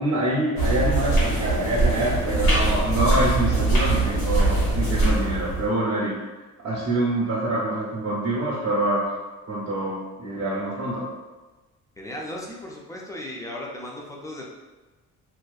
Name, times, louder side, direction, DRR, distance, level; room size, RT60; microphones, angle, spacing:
voice 1, 0.0-6.1 6.6-9.1 9.5-11.0, right 1 dB, 45° right, -7 dB, 0.8 m, -25 dB
sound 1, 0.6-5.7, right 2 dB, 90° left, 1.3 m, -22 dB
voice 2, 12.0-14.4, left 1 dB, 10° left, -2 dB, 0.5 m, -36 dB
2.6 x 2.2 x 2.4 m, 1.2 s
supercardioid pair, 60°, 39 cm